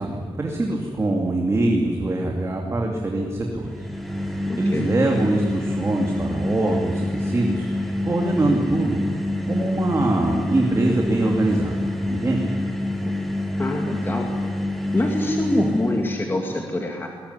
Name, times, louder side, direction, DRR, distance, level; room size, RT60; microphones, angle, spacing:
voice 1, 0.0-3.9 4.3-7.7 8.0-9.0 9.5-12.4, right 2 dB, 30° right, 0 dB, 2.8 m, -23 dB
sound 1, 3.6-16.2, left 1 dB, ahead, 3.0 m, -27 dB
voice 2, 4.5-4.9 13.0-13.1 13.6-14.3 14.9-17.1, left 1 dB, 20° left, 1 dB, 2.3 m, -25 dB
21.0 x 20.0 x 10.0 m, 2.1 s
wide cardioid pair, 140°, 10 cm